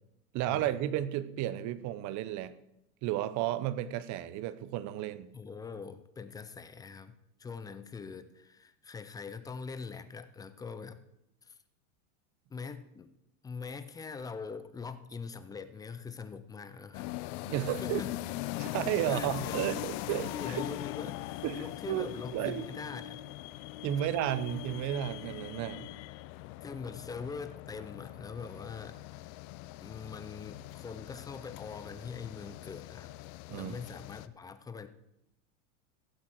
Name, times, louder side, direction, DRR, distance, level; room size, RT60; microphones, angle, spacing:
voice 1, 0.3-2.5 3.0-5.3 17.4-18.0 18.6-20.6 21.4-22.1 22.3-22.7 23.8-25.9 33.5-33.8, right 12 dB, 40° right, 15 dB, 0.8 m, -33 dB
voice 2, 5.3-7.1 7.4-11.0 11.4-11.6 12.5-13.1 13.4-17.1 17.7-18.2 19.1-19.6 20.1-23.2 26.6-29.3 29.8-33.1 33.5-34.9, left 5 dB, 10° left, 12 dB, 0.3 m, -43 dB
sound 1, 16.9-34.3, left 17 dB, 50° left, 0.6 m, -41 dB
16.0 x 7.5 x 4.5 m, 0.84 s
supercardioid pair, 120°, 44 cm